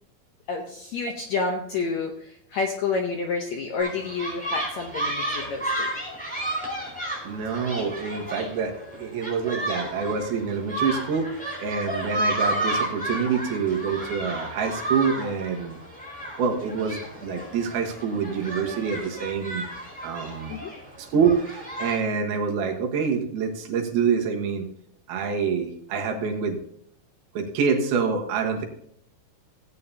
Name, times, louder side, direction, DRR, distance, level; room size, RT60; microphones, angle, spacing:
voice 1, 0.5-5.9 11.2-11.9 20.5-20.7, left 4 dB, 75° left, 3 dB, 1.6 m, -30 dB
sound 1, 3.8-22.0, right 1 dB, ahead, 4.4 m, -32 dB
voice 2, 7.2-11.3 11.6-15.8 16.4-19.7 20.0-20.6 21.0-24.7 25.1-26.6 27.3-28.7, right 6 dB, 85° right, 2 dB, 3.3 m, -26 dB
17.0 x 8.9 x 2.8 m, 0.70 s
omnidirectional pair, 4.3 m